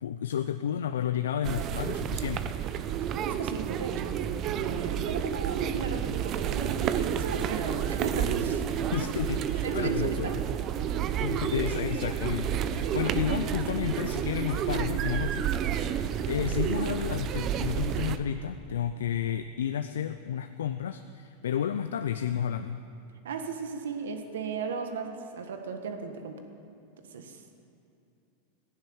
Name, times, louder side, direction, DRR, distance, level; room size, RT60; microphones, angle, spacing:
voice 1, 0.0-2.6 8.9-10.4 11.2-15.8 16.3-22.8, left 9 dB, 90° left, 10 dB, 0.5 m, -31 dB
sound 1, 1.4-18.2, right 9 dB, 40° right, 0.7 m, -30 dB
voice 2, 3.2-4.2 4.5-8.6 9.5-10.3 23.2-26.4 27.1-27.4, right 5 dB, 85° right, 5 dB, 1.5 m, -35 dB
Piano, 4.4-9.5, equal, 10° right, 1.5 m, -52 dB
15.0 x 10.5 x 8.0 m, 2.7 s
hypercardioid pair, 120°, 0 cm